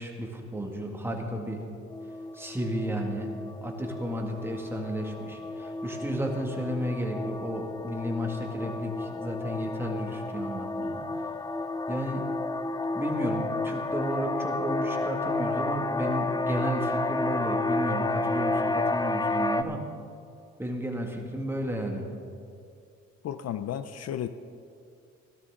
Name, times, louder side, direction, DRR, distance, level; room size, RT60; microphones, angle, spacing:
voice 1, 0.0-1.6 2.3-3.3 3.6-11.3 11.9-12.2 12.9-19.8 20.6-22.1, equal, 10° right, 1 dB, 2.0 m, -33 dB
sound 1, 1.9-19.6, left 2 dB, 15° left, 0.5 m, -31 dB
voice 2, 23.2-24.3, left 10 dB, 55° left, 11 dB, 0.5 m, -33 dB
16.5 x 12.5 x 3.7 m, 2.5 s
cardioid pair, 90°, 30 cm